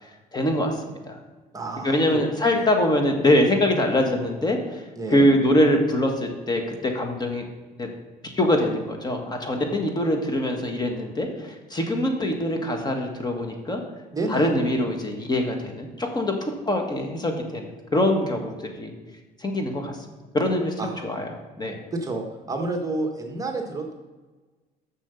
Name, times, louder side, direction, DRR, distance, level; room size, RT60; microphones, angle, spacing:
voice 1, 0.3-0.7 1.1-1.2 1.8-4.6 5.1-7.4 7.8-7.9 8.2-13.8 14.3-16.3 16.7-18.9 19.4-19.9 20.3-21.3 21.6-21.8, left 1 dB, 25° left, 3 dB, 1.6 m, -23 dB
voice 2, 1.5-2.2 2.5-2.7 4.9-5.3 14.1-14.5 20.8-21.1 21.9-23.9, right 2 dB, 20° right, 2 dB, 1.2 m, -30 dB
7.2 x 6.5 x 6.9 m, 1.2 s
cardioid pair, 110°, 17 cm